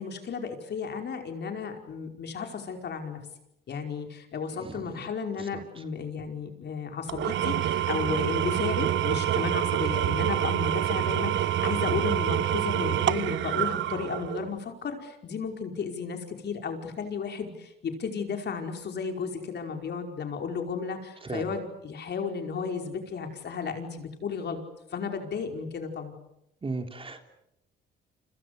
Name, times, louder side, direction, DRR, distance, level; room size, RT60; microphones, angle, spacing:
voice 1, 0.0-3.2 3.7-24.6 24.9-26.1, left 6 dB, 60° left, 4 dB, 5.0 m, -34 dB
voice 2, 4.6-4.9 5.4-5.6 21.2-21.4 26.6-27.3, right 3 dB, 25° right, 5 dB, 3.6 m, -36 dB
Engine / Tools, 7.1-14.6, right 11 dB, 70° right, 1.0 m, -27 dB
29.5 x 26.5 x 6.8 m, 0.83 s
cardioid pair, 90°, 20 cm